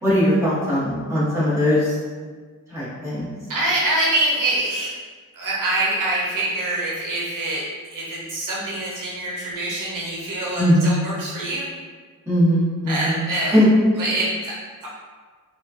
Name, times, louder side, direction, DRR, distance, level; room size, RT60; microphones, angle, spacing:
voice 1, 0.0-1.9 2.7-3.3 10.6-10.9 12.3-13.2 13.5-13.7, equal, 10° right, -11 dB, 1.3 m, -19 dB
voice 2, 3.5-5.0 5.3-7.7 7.9-11.7 12.9-13.5 14.0-14.9, right 1 dB, 65° right, -5 dB, 0.8 m, -25 dB
4.7 x 2.3 x 2.8 m, 1.5 s
wide cardioid pair, 155°, 34 cm